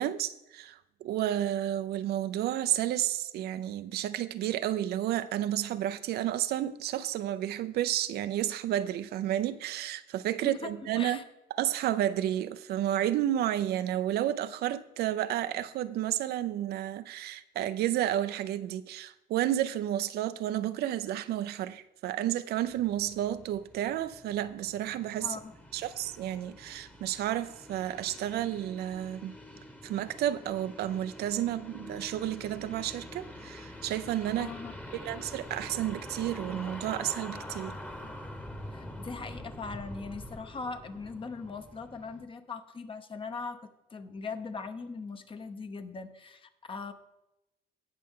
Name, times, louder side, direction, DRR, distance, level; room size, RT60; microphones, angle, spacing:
voice 1, 0.0-11.2 11.6-25.4 25.7-29.3 29.8-34.5 34.9-37.8, right 12 dB, 70° right, 0.6 m, -31 dB
voice 2, 10.4-11.2 25.2-25.5 34.4-34.7 38.7-46.9, left 4 dB, 30° left, 1.0 m, -40 dB
sound 1, 22.7-42.2, left 1 dB, 10° left, 1.3 m, -45 dB
18.5 x 6.1 x 3.8 m
cardioid pair, 110°, 17 cm